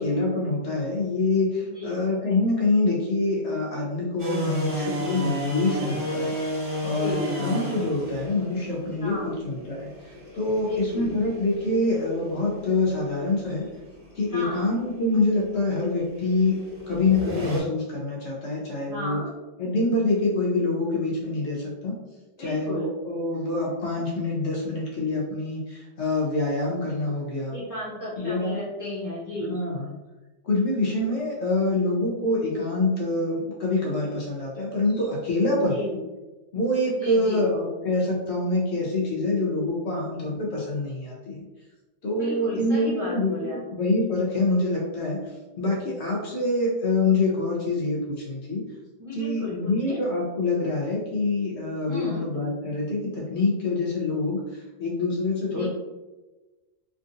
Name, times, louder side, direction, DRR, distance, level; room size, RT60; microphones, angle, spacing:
voice 1, 0.0-6.3 6.8-9.1 9.4-9.9 10.3-13.7 14.2-16.6 16.9-19.2 19.6-21.9 22.4-27.6 28.2-28.6 29.5-29.9 30.4-35.8 36.5-41.4 42.0-45.2 45.6-48.6 49.1-55.7, left 2 dB, 65° left, -4 dB, 1.0 m, -25 dB
voice 2, 1.6-2.0 6.8-7.3 9.0-9.4 10.6-11.1 14.3-14.7 18.9-19.3 22.4-22.9 27.5-29.6 35.5-36.1 36.9-37.5 42.1-43.6 49.0-50.0 51.9-52.2 55.5-55.7, left 1 dB, 15° right, -8 dB, 1.0 m, -34 dB
sound 1, 4.2-17.6, equal, 60° right, 1.6 m, -34 dB
3.6 x 2.5 x 2.5 m, 1.1 s
omnidirectional pair, 1.3 m